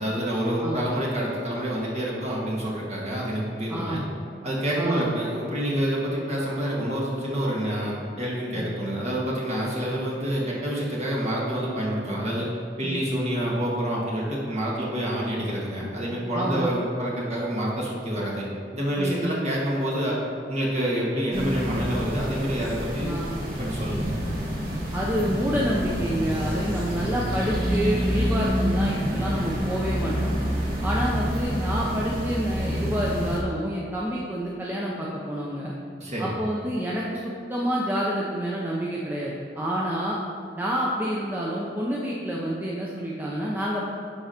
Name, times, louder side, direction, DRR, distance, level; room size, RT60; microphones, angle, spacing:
voice 1, 0.0-4.0 4.4-12.5 12.8-18.5 18.7-20.2 20.5-23.1 23.6-24.2 36.0-36.4, equal, 40° right, -4 dB, 1.9 m, -27 dB
voice 2, 3.7-4.0 4.8-5.1 8.5-8.7 12.8-13.0 16.3-16.7 19.0-19.3 23.0-23.3 24.9-30.3 30.8-35.7 36.2-40.2 40.6-43.9, equal, 10° right, -5 dB, 0.7 m, -28 dB
sound 1, 21.3-33.4, equal, 55° right, 1.5 m, -28 dB
10.5 x 4.8 x 4.4 m, 2.6 s
head